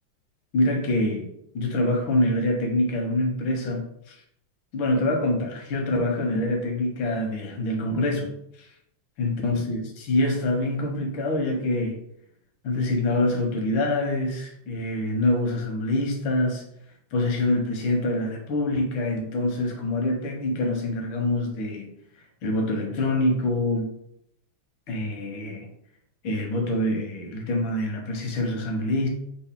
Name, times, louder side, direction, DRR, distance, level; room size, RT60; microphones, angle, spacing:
voice 1, 0.5-1.3 1.5-4.2 4.7-8.3 8.6-8.7 9.2-12.0 12.6-16.7 17.1-21.9 22.4-23.9 24.9-25.7 26.2-29.1, left 1 dB, 85° left, 2 dB, 1.5 m, -25 dB
3.8 x 2.5 x 3.5 m, 0.75 s
omnidirectional pair, 2.1 m